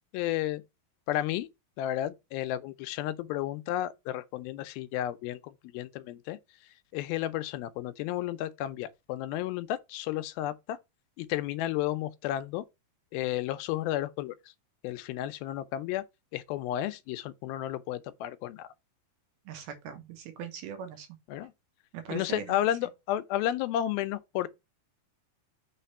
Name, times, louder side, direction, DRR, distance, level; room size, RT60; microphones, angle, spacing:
voice 1, 0.1-0.6 1.1-1.5 1.8-6.4 6.9-10.8 11.2-12.6 13.1-14.4 14.8-16.0 16.3-18.7 21.3-21.5 22.1-24.5, left 13 dB, 85° left, 2.4 m, -32 dB
voice 2, 19.5-21.1 21.9-22.6, right 8 dB, 90° right, 3.0 m, -40 dB
6.3 x 3.3 x 5.5 m
omnidirectional pair, 4.4 m